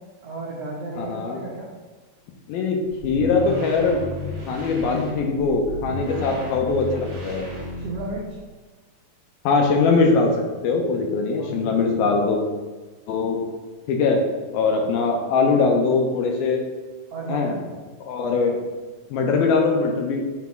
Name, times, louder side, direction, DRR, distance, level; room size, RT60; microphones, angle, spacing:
voice 1, 0.2-1.7 5.7-5.8 6.1-6.4 7.8-8.2 11.4-11.7 12.0-12.1 17.1-17.7, right 2 dB, 80° right, -4 dB, 1.4 m, -34 dB
voice 2, 1.0-1.4 2.5-2.8 3.0-4.0 4.5-7.5 9.5-12.4 13.1-13.4 13.9-14.2 14.5-16.6 17.3-17.5 18.1-18.6 19.1-20.2, left 4 dB, 80° left, 2 dB, 2.6 m, -21 dB
sound 1, 3.0-8.3, left 1 dB, 40° right, 2.4 m, -34 dB
6.1 x 5.7 x 4.5 m, 1.3 s
omnidirectional pair, 4.6 m